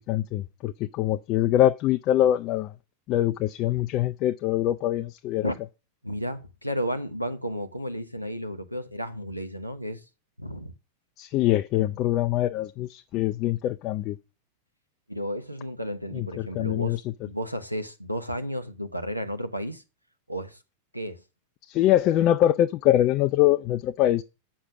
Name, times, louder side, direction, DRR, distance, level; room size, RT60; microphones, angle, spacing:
voice 1, 0.1-2.7 3.1-5.5 11.2-14.2 16.1-17.0 21.6-24.2, left 13 dB, 40° left, 0.4 m, -24 dB
voice 2, 6.0-10.0 10.4-10.7 11.8-11.9 15.1-17.0 17.3-19.8 20.3-20.6 20.9-21.2, equal, 90° right, 1.0 m, -32 dB
7.8 x 6.5 x 6.0 m
figure-of-eight pair, 90°, 0 cm